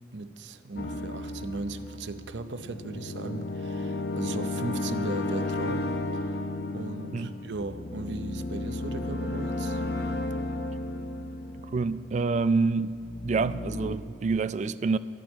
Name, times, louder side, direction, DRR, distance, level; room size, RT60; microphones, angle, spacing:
voice 1, 0.1-5.9 6.2-6.4 6.7-9.8, right 3 dB, 80° right, 0.6 m, -37 dB
sound 1, 0.8-12.4 12.9-14.0, left 2 dB, 65° left, 0.7 m, -33 dB
voice 2, 11.7-15.0, right 4 dB, 40° right, 0.3 m, -27 dB
14.0 x 6.1 x 9.9 m
head